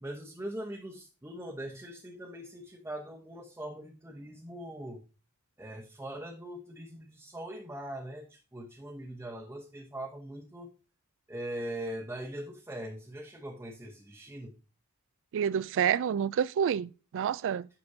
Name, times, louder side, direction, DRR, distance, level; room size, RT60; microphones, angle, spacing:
voice 1, 0.0-5.0 5.6-10.7 11.3-14.5, right 1 dB, 10° right, 0.9 m, -41 dB
voice 2, 15.3-17.7, right 8 dB, 60° right, 0.3 m, -28 dB
9.5 x 6.0 x 2.7 m
head